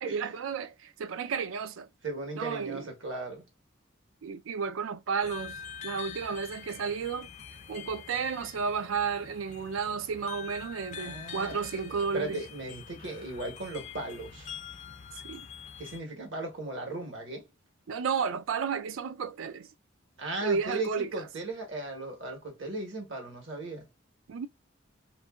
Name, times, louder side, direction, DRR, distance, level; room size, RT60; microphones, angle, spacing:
voice 1, 0.0-1.9 2.3-2.9 4.2-5.6 5.8-7.3 7.7-12.4 15.2-15.5 17.9-19.7 20.4-21.1 24.3-24.5, right 6 dB, 90° right, 0.4 m, -32 dB
voice 2, 2.0-3.4 10.9-11.6 12.1-14.5 15.8-17.5 20.2-23.9, right 2 dB, 70° right, 1.2 m, -37 dB
sound 1, 5.2-16.0, left 7 dB, 35° left, 0.4 m, -45 dB
2.7 x 2.6 x 2.2 m
head